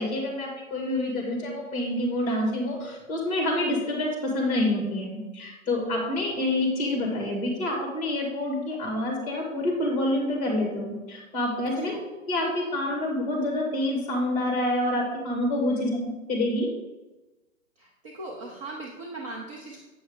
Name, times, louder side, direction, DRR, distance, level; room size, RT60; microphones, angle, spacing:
voice 1, 0.0-12.0 12.3-16.7, left 1 dB, 20° left, 0 dB, 2.1 m, -27 dB
voice 2, 17.8-19.8, right 2 dB, 25° right, -2 dB, 0.6 m, -39 dB
8.3 x 6.3 x 3.7 m, 1.1 s
hypercardioid pair, 155°, 41 cm